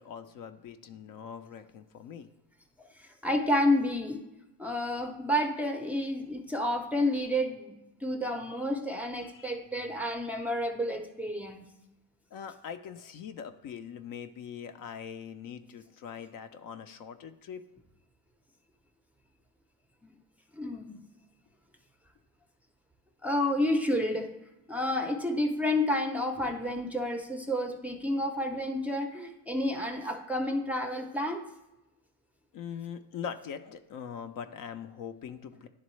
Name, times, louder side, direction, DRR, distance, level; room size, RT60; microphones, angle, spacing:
voice 1, 0.0-2.3 9.2-9.5 12.3-17.6 32.5-35.7, left 7 dB, 50° left, 9 dB, 0.5 m, -42 dB
voice 2, 3.2-4.2 4.6-7.7 8.0-11.6 20.6-21.0 23.2-24.3 24.7-31.4, left 1 dB, 5° right, 3 dB, 0.5 m, -30 dB
10.5 x 3.7 x 3.1 m, 0.98 s
cardioid pair, 125°, 42 cm